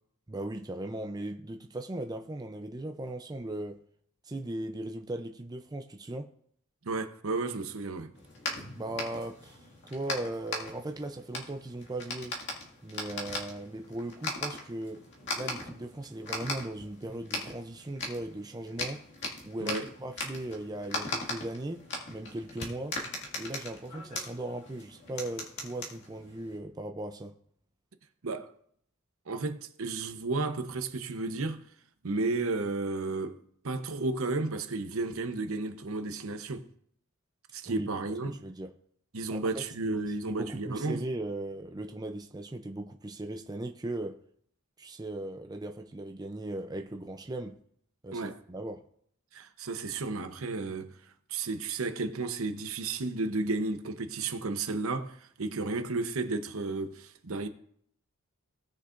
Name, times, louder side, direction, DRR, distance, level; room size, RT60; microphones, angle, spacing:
voice 1, 0.3-3.8 4.2-6.3 8.7-9.6 9.9-12.4 12.8-15.0 15.3-19.1 19.4-23.0 23.4-27.3 37.7-37.9 38.2-38.7 39.3-44.2 44.8-47.6 48.0-48.8, right 1 dB, 20° right, 0.5 m, -38 dB
voice 2, 6.8-8.1 19.6-19.9 28.2-28.5 29.3-31.7 32.0-33.4 33.6-36.6 37.5-38.4 39.1-41.0 48.1-48.4 49.3-51.0 51.3-57.5, right 3 dB, 70° right, 0.9 m, -33 dB
sound 1, 8.1-26.6, left 2 dB, 55° left, 2.1 m, -39 dB
18.0 x 6.5 x 2.5 m
head